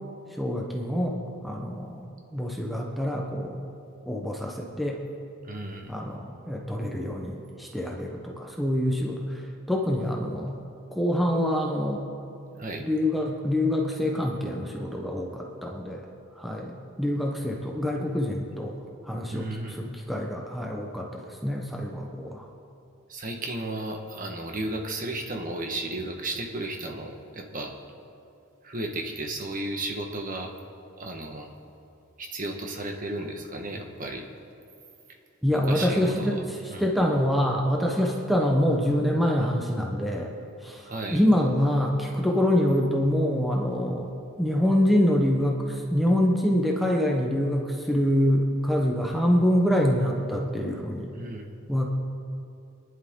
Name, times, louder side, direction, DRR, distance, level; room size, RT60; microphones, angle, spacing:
voice 1, 0.4-3.7 4.1-5.0 5.9-9.4 9.7-10.5 10.9-12.1 12.8-16.1 16.4-18.7 19.0-22.4 35.4-40.3 40.6-44.1 44.4-51.1 51.7-51.9, equal, ahead, -1 dB, 1.0 m, -25 dB
voice 2, 5.5-5.9 12.6-12.8 19.3-19.8 23.1-27.7 28.6-30.5 31.0-31.5 32.2-34.3 35.6-36.4 36.7-36.9 40.8-41.2 51.1-51.5, right 2 dB, 40° right, 2 dB, 1.4 m, -34 dB
24.5 x 11.0 x 3.8 m, 2.6 s
head